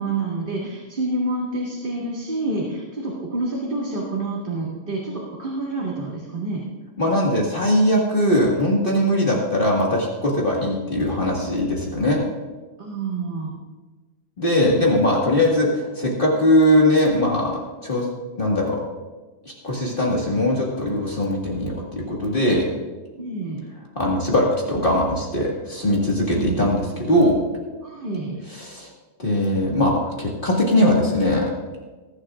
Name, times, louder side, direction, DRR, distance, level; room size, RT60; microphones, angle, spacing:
voice 1, 0.0-6.6 12.8-13.5 23.2-23.6 26.3-26.6 27.8-28.4, right 2 dB, 45° right, -5 dB, 2.2 m, -28 dB
voice 2, 7.0-12.2 14.4-17.5 17.8-18.1 18.4-18.8 19.6-22.7 24.0-27.4 28.5-28.9 29.2-31.5, left 1 dB, 45° left, -3 dB, 2.1 m, -20 dB
21.0 x 11.0 x 2.5 m, 1.3 s
omnidirectional pair, 1.3 m